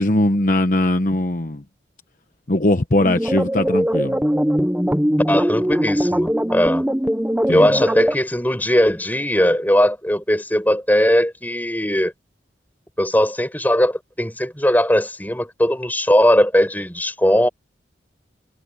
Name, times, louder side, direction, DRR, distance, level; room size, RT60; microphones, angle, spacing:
voice 1, 0.0-1.6 2.5-4.2 7.5-7.8, left 1 dB, 45° left, 1.0 m, -20 dB
sound 1, 3.0-8.2, equal, 5° right, 0.9 m, -21 dB
voice 2, 5.3-6.8 7.5-12.1 13.0-17.5, equal, 10° left, 5.9 m, -19 dB
head